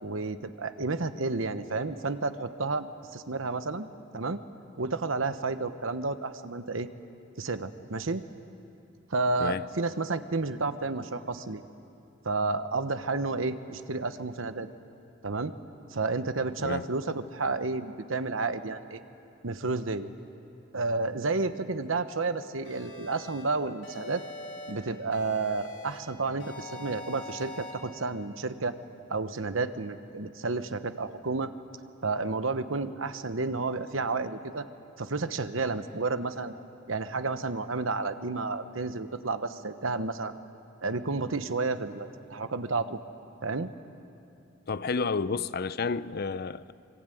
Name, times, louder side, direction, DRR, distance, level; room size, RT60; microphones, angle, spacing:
voice 1, 0.0-3.9 4.1-4.4 4.8-6.9 7.4-8.2 9.1-11.6 12.2-14.7 15.2-15.5 15.9-19.0 19.4-20.1 20.7-24.2 24.7-28.8 29.1-31.5 32.0-34.7 35.0-36.5 36.9-40.3 40.8-43.0 43.4-43.7, right 3 dB, 80° right, 1.1 m, -31 dB
sound 1, 22.6-23.4 23.8-24.7 25.1-26.0 26.4-27.7, left 2 dB, 75° left, 6.4 m, -43 dB
voice 2, 44.7-46.7, left 4 dB, 50° left, 0.6 m, -30 dB
26.0 x 23.5 x 9.2 m
head